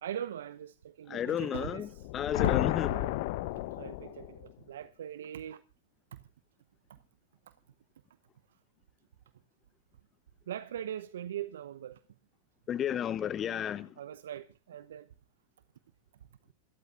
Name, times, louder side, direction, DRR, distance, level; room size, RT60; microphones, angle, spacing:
voice 1, 0.0-2.6 2.9-3.1 3.7-5.6 6.1-6.3 7.5-7.6 10.5-12.0 14.0-15.1, right 10 dB, 70° right, 0.8 m, -41 dB
voice 2, 1.1-1.9 2.1-2.9 12.7-13.9, left 9 dB, 30° left, 0.9 m, -32 dB
sound 1, 1.9-4.5, left 17 dB, 55° left, 0.8 m, -32 dB
27.5 x 13.0 x 2.5 m
figure-of-eight pair, 90°, 0 cm